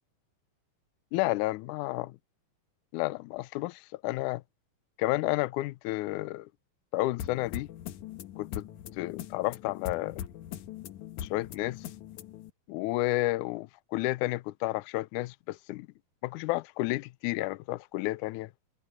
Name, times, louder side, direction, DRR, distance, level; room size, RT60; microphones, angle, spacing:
voice 1, 1.1-2.2 2.9-4.4 5.0-6.5 6.9-7.7 8.4-8.6 9.0-10.2 11.2-11.8 12.7-15.9 16.2-18.5, left 19 dB, 85° left, 1.7 m, -31 dB
sound 1, 7.2-12.5, left 10 dB, 65° left, 2.2 m, -41 dB
omnidirectional pair, 4.2 m